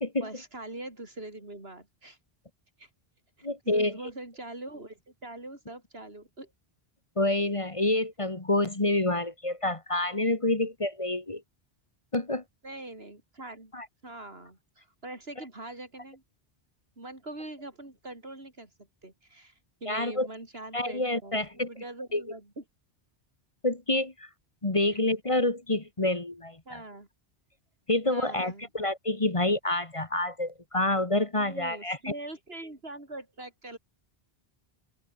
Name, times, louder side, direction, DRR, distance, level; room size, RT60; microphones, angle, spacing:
voice 1, 0.2-2.2 2.8-2.9 3.4-6.5 12.6-13.7 14.0-16.2 17.0-18.7 19.0-19.5 19.8-22.6 24.9-25.0 26.6-27.1 28.1-28.7 31.4-33.8, right 2 dB, 75° right, 5.1 m, -43 dB
voice 2, 3.4-3.9 7.2-11.4 12.1-12.4 13.7-13.9 19.9-20.3 20.7-21.7 22.1-22.2 23.6-24.3 24.6-26.8 27.9-32.1, left 2 dB, 30° left, 1.7 m, -28 dB
open air
omnidirectional pair, 1.0 m